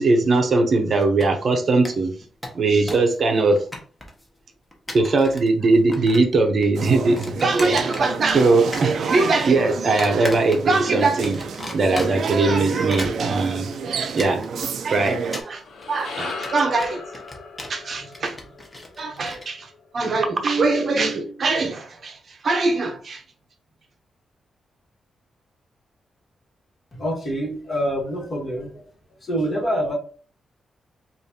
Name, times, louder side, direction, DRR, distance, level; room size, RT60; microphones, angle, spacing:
voice 1, 0.0-2.1 2.5-3.6 4.9-11.4 11.7-13.7 14.0-14.5 14.8-15.6 15.9-17.0 17.7-18.4 19.0-23.2, right 3 dB, 50° right, 0.7 m, -20 dB
sound 1, 1.0-1.5 1.8-1.9 2.2-3.1 3.4-4.2 4.7-5.5 5.7-6.4 6.6-8.5 8.7-9.4 10.0-10.8 11.2-12.3 12.7-19.4, left 1 dB, 15° left, 1.1 m, -36 dB
sound 2, 6.7-15.4, right 5 dB, 75° right, 0.4 m, -29 dB
sound 3, 15.5-19.9, left 4 dB, 85° left, 0.7 m, -37 dB
voice 2, 26.9-28.8 29.2-29.9, equal, 40° left, 1.9 m, -26 dB
5.0 x 2.6 x 2.8 m
cardioid pair, 110°, 0 cm